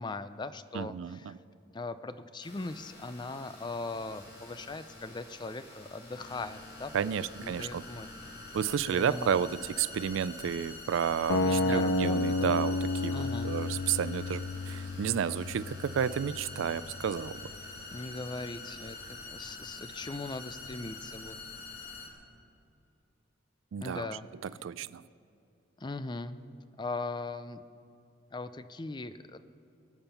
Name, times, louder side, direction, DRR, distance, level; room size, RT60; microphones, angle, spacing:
voice 1, 0.0-1.4 1.7-8.1 8.9-9.4 11.4-12.5 13.1-13.5 17.9-21.4 23.8-24.3 25.8-26.4 26.8-27.6 28.3-29.4, left 3 dB, 20° left, 12 dB, 0.4 m, -39 dB
voice 2, 0.7-1.3 6.9-7.8 8.5-12.8 13.0-17.4 23.7-24.1 24.6-25.0, right 8 dB, 70° right, 18 dB, 0.3 m, -31 dB
Train Still On Synthetics Long Ride, 2.4-22.1, left 3 dB, 55° left, 2.4 m, -46 dB
sound 1, 11.3-17.3, left 2 dB, 70° left, 0.6 m, -32 dB
23.0 x 8.8 x 5.6 m, 2.6 s
head